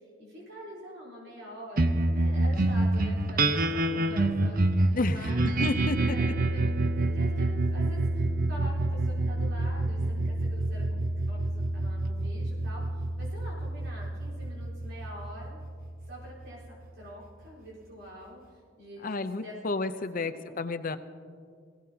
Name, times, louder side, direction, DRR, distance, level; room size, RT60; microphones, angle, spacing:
voice 1, 0.2-6.2 6.5-6.6 7.0-11.0 11.3-15.6 16.1-19.6 20.1-20.6, equal, 85° right, -7 dB, 4.3 m, -45 dB
sound 1, 1.8-16.4, right 2 dB, 50° right, 0.8 m, -27 dB
voice 2, 4.9-6.3 19.0-21.0, left 3 dB, 45° left, 10 dB, 0.7 m, -32 dB
22.5 x 17.0 x 2.9 m, 2.1 s
head